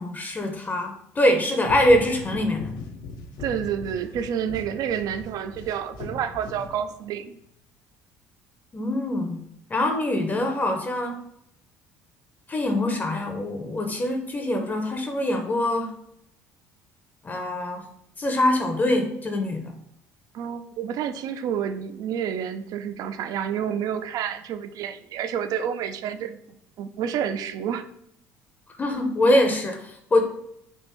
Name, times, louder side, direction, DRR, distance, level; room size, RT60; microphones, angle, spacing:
voice 1, 0.0-2.7 8.7-9.4 9.7-11.2 12.5-15.9 17.2-17.8 18.2-19.7 28.8-30.2, left 1 dB, 25° left, 4 dB, 0.6 m, -24 dB
sound 1, 1.6-7.2, left 3 dB, 70° left, 0.5 m, -39 dB
voice 2, 3.4-7.4 20.3-27.9, right 8 dB, 60° right, 10 dB, 0.3 m, -29 dB
3.4 x 2.5 x 3.0 m, 0.72 s
supercardioid pair, 75°, 7 cm